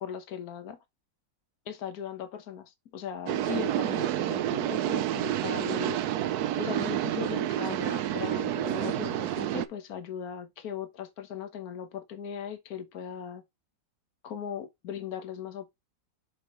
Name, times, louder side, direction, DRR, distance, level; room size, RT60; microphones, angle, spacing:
voice 1, 0.0-0.8 1.7-6.1 6.6-13.4 14.2-15.7, left 8 dB, 55° left, 1.6 m, -38 dB
sound 1, 3.3-9.6, right 12 dB, 70° right, 1.0 m, -29 dB
6.7 x 5.5 x 3.2 m
omnidirectional pair, 2.0 m